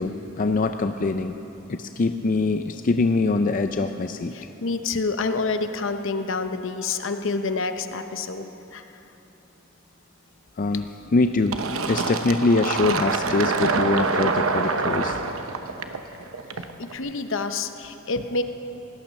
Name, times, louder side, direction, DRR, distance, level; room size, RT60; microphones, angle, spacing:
voice 1, 0.0-1.3 1.7-4.3 10.6-10.9 11.1-11.6 11.9-15.2, left 3 dB, 40° left, 8 dB, 0.4 m, -23 dB
voice 2, 4.3-8.8 16.8-18.4, left 3 dB, 65° left, 8 dB, 0.9 m, -28 dB
Fill (with liquid), 11.5-16.9, right 4 dB, 80° right, 0.9 m, -25 dB
18.0 x 12.0 x 6.5 m, 3.0 s
head